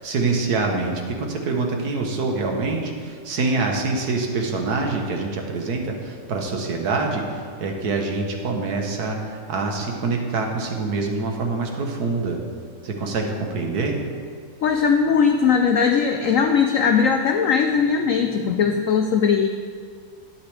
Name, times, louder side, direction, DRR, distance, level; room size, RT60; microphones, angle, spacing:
voice 1, 0.0-12.4 12.8-14.0, right 3 dB, 60° right, 2 dB, 1.5 m, -25 dB
voice 2, 14.6-19.5, left 6 dB, 85° left, 5 dB, 0.7 m, -19 dB
11.5 x 9.1 x 3.3 m, 2.1 s
omnidirectional pair, 2.0 m